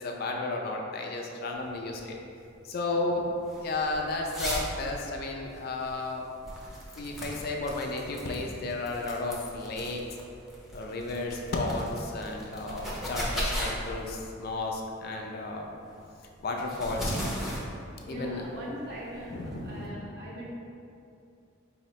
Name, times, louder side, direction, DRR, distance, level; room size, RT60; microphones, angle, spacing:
voice 1, 0.0-2.2 2.6-3.3 3.6-6.3 7.0-10.0 10.7-15.8 16.4-17.1 18.1-18.4 19.3-20.0, left 2 dB, 50° left, 1 dB, 0.4 m, -33 dB
sound 1, 1.6-19.9, equal, ahead, 0.5 m, -38 dB
voice 2, 18.0-20.5, right 1 dB, 55° right, -7 dB, 1.1 m, -41 dB
4.3 x 2.8 x 3.1 m, 2.5 s
head